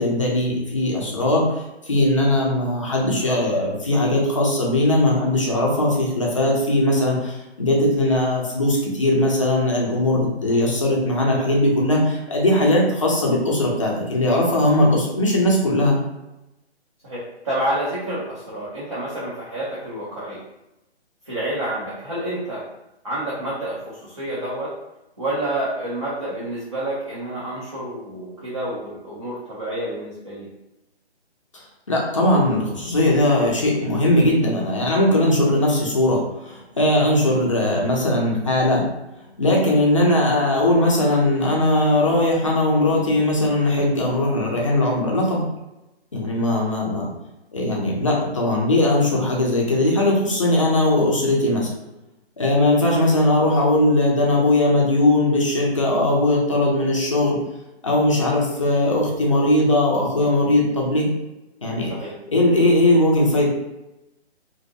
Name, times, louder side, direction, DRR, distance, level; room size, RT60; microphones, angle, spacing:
voice 1, 0.0-16.0 31.5-38.9 39.4-45.5 46.1-47.1 47.5-51.7 52.4-57.4 57.8-61.1 61.6-61.9 62.3-63.5, left 1 dB, 30° left, -2 dB, 0.4 m, -19 dB
voice 2, 17.0-20.4 21.3-22.6 23.0-24.7 25.2-30.5 52.9-53.1 61.9-62.1, right 1 dB, 30° right, -8 dB, 0.4 m, -29 dB
2.5 x 2.0 x 2.5 m, 0.94 s
figure-of-eight pair, 150°, 33 cm